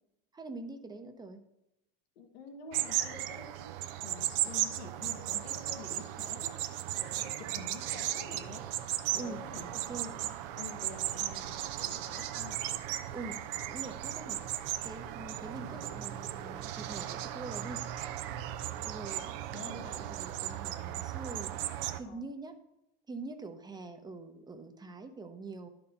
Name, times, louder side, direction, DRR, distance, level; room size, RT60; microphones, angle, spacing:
voice 1, 0.3-1.4 9.1-9.4 9.7-10.1 13.1-13.4 13.6-14.4 14.8-17.8 18.8-22.5 23.1-25.7, right 3 dB, 15° right, 7 dB, 0.8 m, -44 dB
voice 2, 2.1-3.7 4.0-8.7 9.1-9.7 10.0-12.7 15.6-16.0 19.5-20.2 22.0-22.2, left 4 dB, 90° left, 4 dB, 1.5 m, -48 dB
sound 1, 2.7-22.0, right 12 dB, 70° right, 0.7 m, -36 dB
11.0 x 4.4 x 5.3 m, 0.87 s
supercardioid pair, 125°, 29 cm